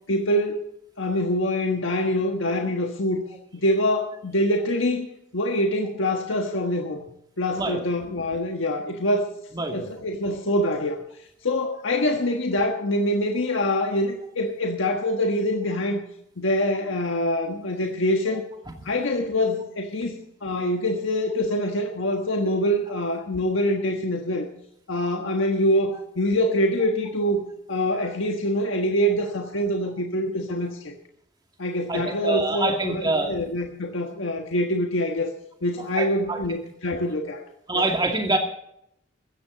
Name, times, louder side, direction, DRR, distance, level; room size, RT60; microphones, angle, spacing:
voice 1, 0.1-0.6 1.0-3.2 3.5-5.1 5.3-7.1 7.4-9.3 9.7-11.0 11.4-16.0 16.4-18.4 18.8-24.5 24.9-27.4 27.7-30.9 31.6-35.3 35.6-37.5 37.7-37.9, left 1 dB, 85° left, 2 dB, 1.4 m, -25 dB
voice 2, 9.5-9.9 31.9-33.3 36.0-36.4 37.7-38.4, right 2 dB, 20° right, 2 dB, 2.4 m, -25 dB
16.0 x 14.5 x 4.0 m, 0.73 s
head